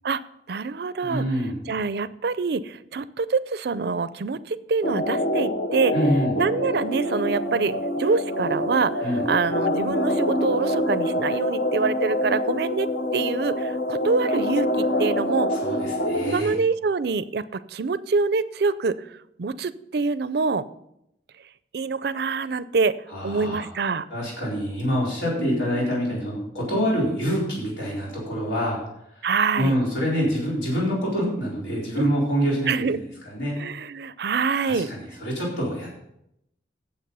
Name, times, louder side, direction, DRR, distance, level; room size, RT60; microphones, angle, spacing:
voice 1, 0.5-1.3 1.7-5.9 6.3-12.9 13.1-15.6 16.2-19.0 19.4-20.6 21.7-23.0 23.2-24.1 25.4-26.1 29.2-29.7 32.0-32.1 32.7-33.0 33.6-34.9, right 4 dB, 60° right, 16 dB, 0.4 m, -25 dB
voice 2, 1.0-1.6 5.9-6.3 9.0-9.2 15.5-16.5 23.1-23.7 24.1-28.8 29.6-33.6 34.6-36.0, equal, 90° left, -5 dB, 4.1 m, -26 dB
sound 1, 4.8-16.3, left 1 dB, 60° left, 0.8 m, -26 dB
9.3 x 7.4 x 5.5 m, 0.80 s
head